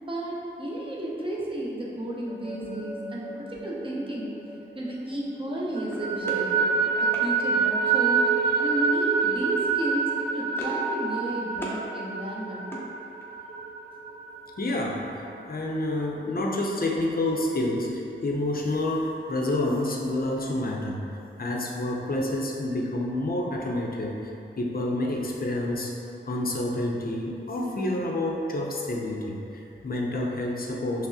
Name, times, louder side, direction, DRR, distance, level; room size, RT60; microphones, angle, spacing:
voice 1, 0.0-4.3 4.7-6.6 7.0-8.3 8.6-12.7, right 1 dB, 25° right, -5 dB, 0.8 m, -33 dB
sound 1, 2.3-5.1 5.5-14.9, right 5 dB, 50° right, 0.4 m, -27 dB
sound 2, 5.9-7.3 8.6-9.0 9.3-9.5 9.9-10.9 11.2-11.8 12.2-13.5, equal, 10° left, 0.7 m, -41 dB
voice 2, 14.6-21.0 21.4-25.9 26.3-31.1, left 1 dB, 45° left, -1 dB, 0.6 m, -28 dB
5.9 x 2.0 x 2.7 m, 2.7 s
cardioid pair, 40°, 20 cm